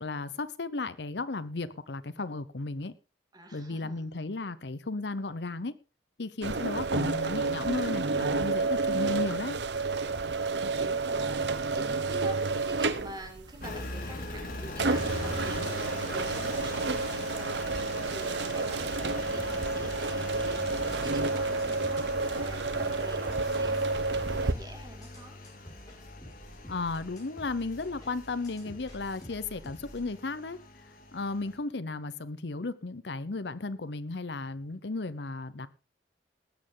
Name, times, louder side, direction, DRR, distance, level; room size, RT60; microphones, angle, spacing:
voice 1, 0.0-2.9 3.5-5.7 6.2-9.6 26.7-35.7, left 3 dB, 75° left, 0.9 m, -35 dB
voice 2, 3.3-4.0 10.6-25.4, right 1 dB, 25° right, 2.6 m, -47 dB
sound 1, 6.4-24.5, right 3 dB, 75° right, 1.0 m, -30 dB
Engine, 13.6-31.6, left 2 dB, 55° left, 2.8 m, -42 dB
sound 2, 18.8-30.1, equal, 20° left, 5.6 m, -49 dB
19.5 x 8.8 x 3.9 m
head